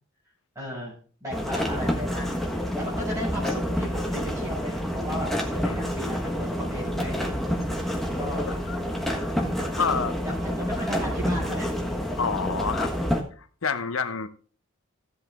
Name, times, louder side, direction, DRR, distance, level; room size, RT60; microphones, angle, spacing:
voice 1, 0.5-2.4 2.8-7.3 7.8-8.6 9.6-11.7, equal, 15° right, 6.4 m, -35 dB
sound 1, 1.3-13.2, equal, ahead, 1.3 m, -28 dB
voice 2, 9.7-10.1 12.2-12.9 13.6-14.3, left 5 dB, 85° left, 0.9 m, -28 dB
14.5 x 8.1 x 3.6 m
head